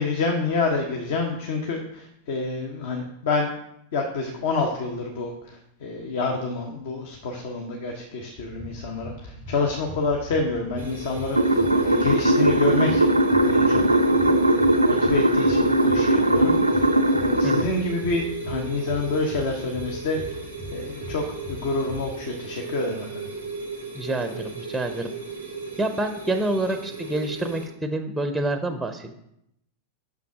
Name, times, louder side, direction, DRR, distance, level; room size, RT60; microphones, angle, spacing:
voice 1, 0.0-3.5 3.9-13.0 13.4-23.3, left 3 dB, 55° left, 2 dB, 0.9 m, -28 dB
sound 1, 8.4-22.1, left 2 dB, 30° left, 1.9 m, -40 dB
sound 2, 10.8-27.7, right 4 dB, 90° left, 1.4 m, -36 dB
sound 3, 11.3-17.6, right 1 dB, 85° right, 0.4 m, -19 dB
voice 2, 23.9-25.1 25.8-29.1, right 1 dB, 5° right, 8 dB, 0.6 m, -27 dB
6.0 x 5.8 x 4.8 m, 0.78 s
figure-of-eight pair, 90°, 0 cm